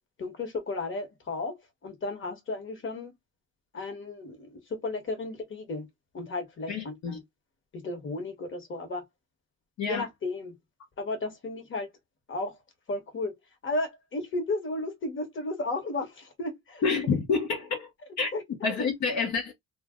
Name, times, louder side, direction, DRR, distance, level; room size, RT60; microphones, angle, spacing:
voice 1, 0.2-1.5 1.8-3.1 3.7-5.9 6.1-7.2 7.7-9.0 9.9-10.5 11.0-11.9 12.3-12.6 12.9-13.3 13.6-16.8 18.3-18.8, left 2 dB, 40° left, 1.3 m, -34 dB
voice 2, 6.7-7.2 9.8-10.1 16.8-17.9 18.2-18.3 18.6-19.5, left 5 dB, 70° left, 0.9 m, -28 dB
2.5 x 2.0 x 3.6 m
cardioid pair, 90°, 30 cm